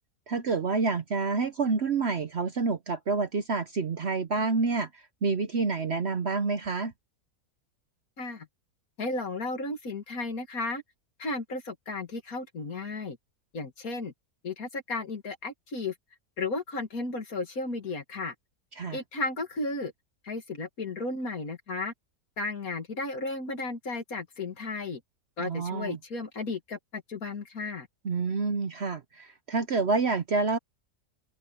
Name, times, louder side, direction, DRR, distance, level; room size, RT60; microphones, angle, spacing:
voice 1, 0.3-4.9 5.2-6.9 18.8-19.0 25.4-26.0 28.0-30.6, right 4 dB, 50° right, 1.0 m, -28 dB
voice 2, 8.2-8.5 9.0-10.8 11.2-13.2 13.5-14.1 14.4-15.9 16.4-18.3 18.9-19.9 20.2-21.9 22.4-25.0 25.4-27.9, left 3 dB, 60° left, 2.7 m, -34 dB
omnidirectional pair, 1.7 m